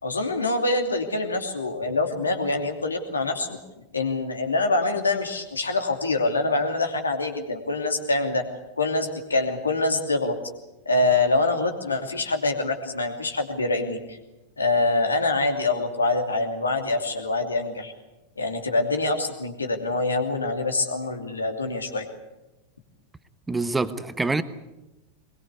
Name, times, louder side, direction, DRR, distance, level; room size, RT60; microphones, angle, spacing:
voice 1, 0.0-3.6 3.9-8.4 8.8-10.4 10.9-14.2 14.6-17.9 18.4-22.1, left 2 dB, 75° left, 2.8 m, -25 dB
voice 2, 23.5-24.4, right 3 dB, 10° right, 1.2 m, -25 dB
22.0 x 21.5 x 8.2 m
figure-of-eight pair, 90°, 0 cm